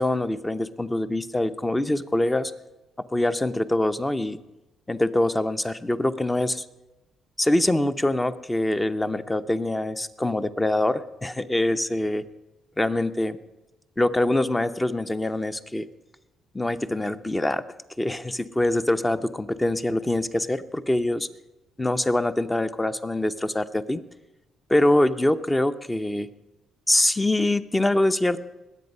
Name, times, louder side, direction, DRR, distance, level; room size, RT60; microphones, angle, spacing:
voice 1, 0.0-2.5 3.1-4.4 4.9-6.6 7.4-12.2 12.8-13.4 14.0-15.9 16.5-17.6 18.0-21.3 21.8-24.0 24.7-26.3 26.9-28.4, left 1 dB, 15° left, 12 dB, 0.7 m, -24 dB
20.0 x 8.0 x 5.5 m, 1.0 s
cardioid pair, 90°, 0 cm